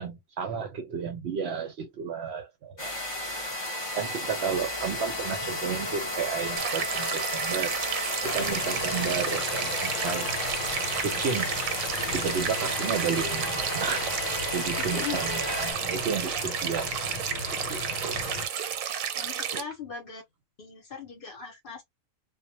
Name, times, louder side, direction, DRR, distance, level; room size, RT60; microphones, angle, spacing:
voice 1, 0.0-2.9 4.0-7.8 8.2-10.3 11.0-11.6 12.1-14.1 14.5-17.0 17.5-18.2 19.5-19.6, right 6 dB, 65° right, 0.7 m, -32 dB
sound 1, 2.8-15.7, left 1 dB, 35° left, 0.4 m, -33 dB
sound 2, 6.6-19.6, right 8 dB, 90° right, 1.0 m, -32 dB
sound 3, 8.2-18.5, left 4 dB, 80° left, 1.1 m, -37 dB
voice 2, 14.8-15.4 19.1-20.2 20.6-21.8, left 6 dB, 50° left, 0.8 m, -39 dB
2.1 x 2.1 x 2.7 m
omnidirectional pair, 1.4 m